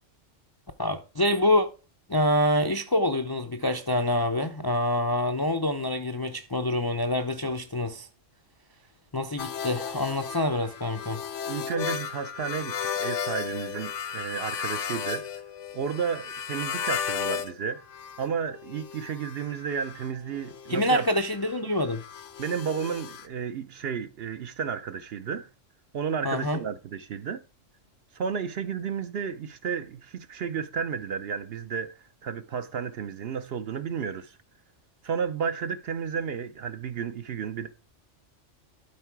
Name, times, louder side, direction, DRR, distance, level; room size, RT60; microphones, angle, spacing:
voice 1, 0.8-1.7 2.1-8.1 9.1-11.2 20.7-22.0 26.2-26.6, left 1 dB, 30° left, 0.4 m, -26 dB
sound 1, 9.4-17.5 17.8-23.3, left 8 dB, 75° left, 1.1 m, -35 dB
voice 2, 11.5-15.3 15.7-17.8 18.2-21.0 22.4-25.5 25.9-27.4 28.1-34.4 35.0-37.7, right 7 dB, 60° right, 0.8 m, -32 dB
12.0 x 4.6 x 4.6 m
omnidirectional pair, 1.3 m